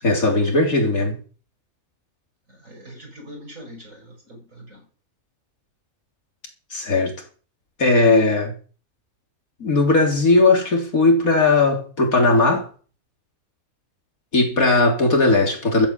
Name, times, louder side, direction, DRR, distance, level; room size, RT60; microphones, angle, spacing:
voice 1, 0.0-1.2 6.7-7.1 7.8-8.5 9.6-12.7 14.3-15.9, left 3 dB, 85° left, 4.0 m, -18 dB
voice 2, 2.5-4.8, equal, 70° right, 6.7 m, -42 dB
14.0 x 8.5 x 7.7 m
omnidirectional pair, 1.4 m